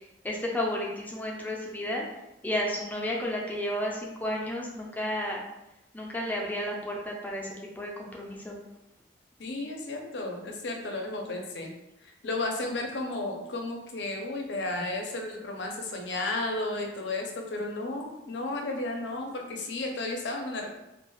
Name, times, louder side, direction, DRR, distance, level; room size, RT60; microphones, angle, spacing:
voice 1, 0.2-2.0 2.4-5.4 5.9-8.6, left 1 dB, 10° left, -2 dB, 0.4 m, -32 dB
voice 2, 9.4-11.7 12.0-20.7, left 2 dB, 70° left, 2 dB, 0.5 m, -33 dB
2.3 x 2.2 x 3.0 m, 0.91 s
head